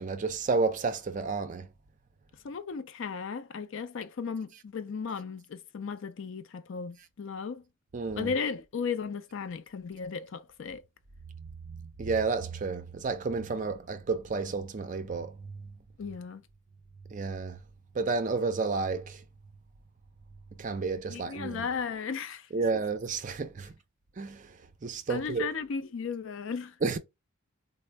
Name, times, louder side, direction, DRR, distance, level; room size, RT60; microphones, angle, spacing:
voice 1, 0.0-1.7 7.9-8.3 12.0-15.3 17.1-17.6 18.0-19.2 20.6-21.7 22.5-23.7 24.2-24.4 24.8-25.5 26.8-27.0, right 4 dB, 35° right, 0.4 m, -31 dB
voice 2, 2.4-7.6 8.1-10.8 16.0-16.4 21.1-22.5 25.1-26.7, left 5 dB, 60° left, 0.4 m, -35 dB
4.2 x 2.0 x 3.2 m
head